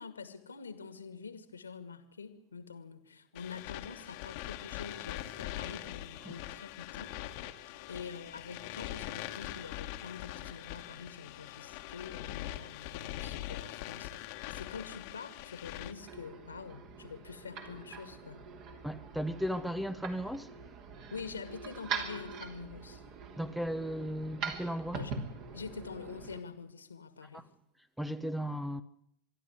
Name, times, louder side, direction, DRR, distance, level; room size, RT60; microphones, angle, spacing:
voice 1, 0.0-7.2 7.9-18.5 21.1-23.0 24.9-25.1 25.5-27.5, left 5 dB, 75° left, 2.1 m, -46 dB
sound 1, 3.3-15.9, left 14 dB, 45° left, 1.6 m, -42 dB
sound 2, 15.8-26.4, right 5 dB, 40° right, 3.1 m, -43 dB
voice 2, 18.8-20.6 23.4-25.0 27.2-27.4 28.0-28.8, equal, ahead, 0.9 m, -36 dB
25.0 x 12.0 x 9.7 m
figure-of-eight pair, 90°, 0 cm